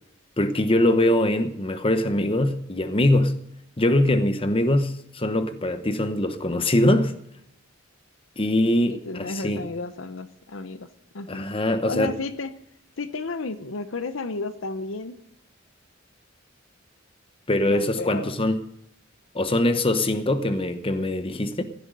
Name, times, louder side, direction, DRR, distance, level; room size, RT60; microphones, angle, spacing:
voice 1, 0.4-3.4 3.8-7.2 8.4-9.6 11.3-12.1 17.5-18.6 19.3-21.6, left 1 dB, 30° left, 1.0 m, -22 dB
voice 2, 8.9-10.9 11.1-11.4 11.9-12.5 13.0-15.1 17.6-18.4, left 3 dB, 80° left, 0.8 m, -32 dB
15.5 x 8.0 x 9.3 m
head